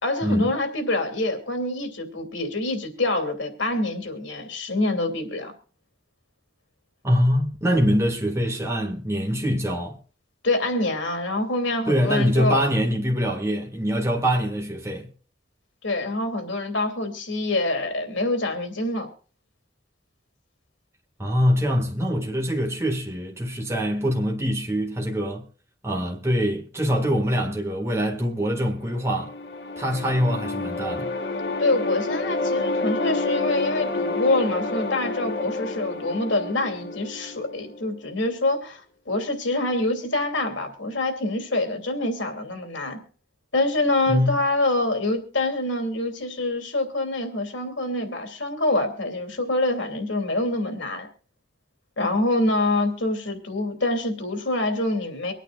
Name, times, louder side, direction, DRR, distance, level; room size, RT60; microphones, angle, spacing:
voice 1, 0.0-5.5 10.4-12.6 15.8-19.1 31.6-43.0 43.5-51.1 52.0-55.3, left 2 dB, 90° left, 2.8 m, -25 dB
voice 2, 7.0-10.0 11.9-15.1 21.2-25.4 25.8-29.3 29.8-31.1 44.1-44.4, equal, 15° right, 1.9 m, -24 dB
sound 1, 28.8-38.0, left 2 dB, 65° left, 1.5 m, -29 dB
24.5 x 9.1 x 2.5 m
head